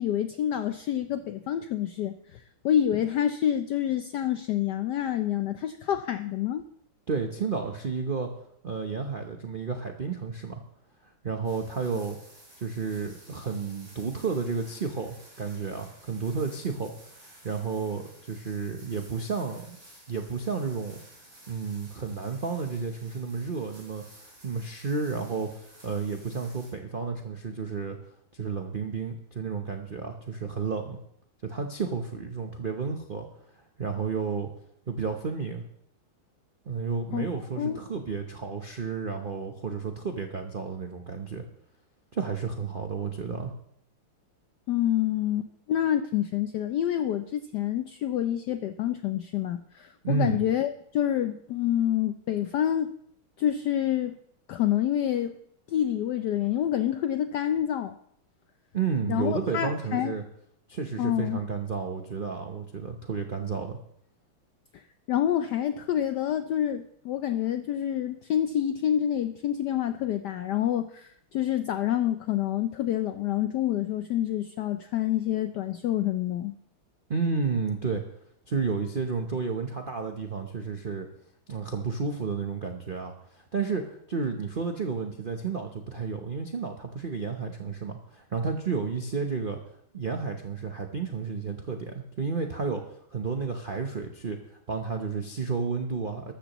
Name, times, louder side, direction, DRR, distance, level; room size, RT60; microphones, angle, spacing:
voice 1, 0.0-6.6 37.1-37.3 37.6-37.8 44.7-52.9 53.4-54.1 54.5-55.4 55.7-57.9 59.1-60.1 61.0-61.4 64.7-64.8 65.1-76.5, left 11 dB, 80° left, 9 dB, 0.9 m, -27 dB
voice 2, 7.1-8.3 8.6-10.6 11.0-12.2 12.6-16.9 17.2-19.8 20.1-21.0 21.5-24.0 24.4-28.0 28.3-31.0 31.4-33.3 33.8-34.5 34.9-35.6 36.7-41.4 42.1-43.5 50.0-50.4 58.7-60.2 60.7-63.8 77.1-78.0 78.5-81.1 81.5-89.6 89.9-92.8 93.1-96.3, right 5 dB, 85° right, 4 dB, 0.4 m, -31 dB
sound 1, 11.4-26.7, right 1 dB, 35° right, 4.2 m, -53 dB
13.5 x 13.0 x 3.0 m, 0.70 s
omnidirectional pair, 2.4 m